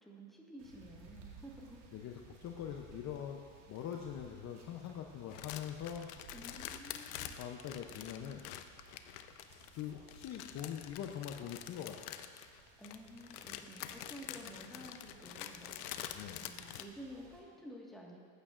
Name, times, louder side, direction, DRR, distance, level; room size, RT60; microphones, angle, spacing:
voice 1, 0.0-1.8 6.3-7.4 12.8-18.2, equal, ahead, -3 dB, 1.6 m, -52 dB
sound 1, 0.6-17.4, right 5 dB, 70° right, 1.9 m, -59 dB
voice 2, 1.9-3.4 3.7-6.1 7.3-8.4 9.8-12.0 16.1-16.4, left 9 dB, 40° left, 2 dB, 0.7 m, -43 dB
sound 2, 5.3-16.8, left 11 dB, 85° left, 0.7 m, -47 dB
14.5 x 8.7 x 2.5 m, 2.1 s
supercardioid pair, 115°, 45 cm